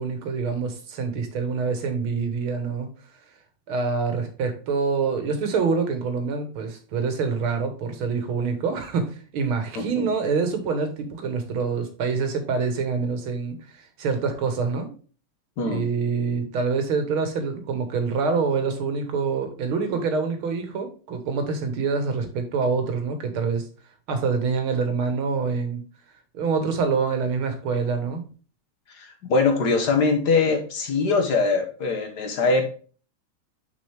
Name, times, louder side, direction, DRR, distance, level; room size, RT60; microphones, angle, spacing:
voice 1, 0.0-2.9 3.7-13.6 14.0-14.9 15.6-23.7 24.1-25.8 26.3-28.2, right 5 dB, 90° right, 7 dB, 2.1 m, -26 dB
voice 2, 9.8-10.1 15.6-15.8 28.9-32.7, left 4 dB, 55° left, 5 dB, 1.6 m, -22 dB
6.4 x 5.2 x 3.3 m, 0.39 s
omnidirectional pair, 2.2 m